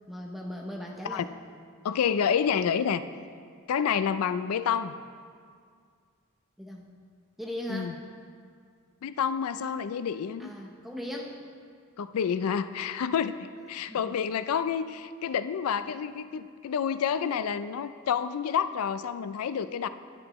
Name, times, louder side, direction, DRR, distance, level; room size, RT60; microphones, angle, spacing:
voice 1, 0.1-1.3 6.6-6.9 7.4-8.0 10.4-11.5 13.8-14.1, equal, ahead, -1 dB, 0.6 m, -38 dB
voice 2, 1.8-3.0 3.7-5.0 7.7-7.9 9.0-10.5 12.0-19.9, left 7 dB, 80° left, 13 dB, 0.4 m, -29 dB
10.5 x 9.7 x 3.0 m, 2.1 s
head